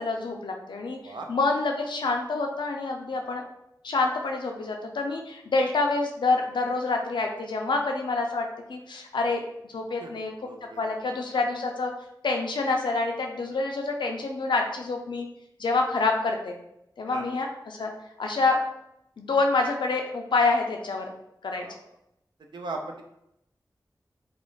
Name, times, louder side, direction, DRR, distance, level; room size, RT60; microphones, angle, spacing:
voice 1, 0.0-3.4 3.8-9.4 9.7-10.3 10.8-11.9 12.2-15.3 15.6-16.5 17.0-17.9 18.2-18.6 19.2-21.1 21.4-21.6, left 3 dB, 80° left, 2 dB, 0.4 m, -27 dB
voice 2, 10.4-11.1 17.1-17.3 21.6-21.9 22.5-23.0, right 3 dB, 80° right, 3 dB, 0.4 m, -38 dB
2.4 x 2.0 x 3.0 m, 0.80 s
wide cardioid pair, 60°, 8 cm